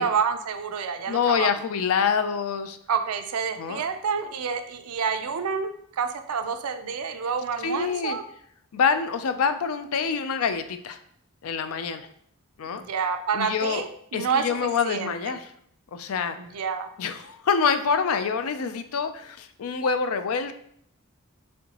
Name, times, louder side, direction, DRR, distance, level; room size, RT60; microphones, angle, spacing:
voice 1, 0.0-1.5 2.9-8.2 12.7-15.4 16.4-16.9, right 6 dB, 85° right, 8 dB, 0.5 m, -28 dB
voice 2, 1.1-2.8 3.6-3.8 7.6-8.2 8.7-11.0 11.4-12.1 12.6-12.8 13.3-13.8 14.1-15.5 15.9-16.4 17.0-20.5, left 6 dB, 75° left, 10 dB, 0.4 m, -26 dB
4.2 x 3.7 x 2.9 m, 0.66 s
head